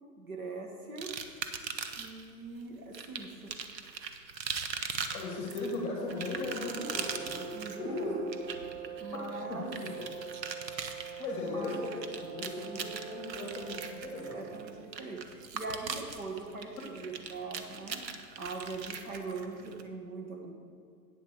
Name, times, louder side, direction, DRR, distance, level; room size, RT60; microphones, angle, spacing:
voice 1, 0.2-1.1 2.0-3.5 7.5-8.4 9.0-9.8 11.4-11.7 12.6-12.9 14.1-18.0 18.4-20.5, right 3 dB, 55° right, 2 dB, 1.7 m, -41 dB
sound 1, 1.0-2.3 2.9-19.8, right 6 dB, 85° right, 1.0 m, -40 dB
voice 2, 5.1-8.2 8.8-8.9 9.5-10.1 11.2-14.6, left 2 dB, 20° left, -1 dB, 1.8 m, -37 dB
sound 2, 5.9-14.9, right 9 dB, 30° right, 0.8 m, -44 dB
9.1 x 7.6 x 6.6 m, 2.1 s
hypercardioid pair, 175°, 50 cm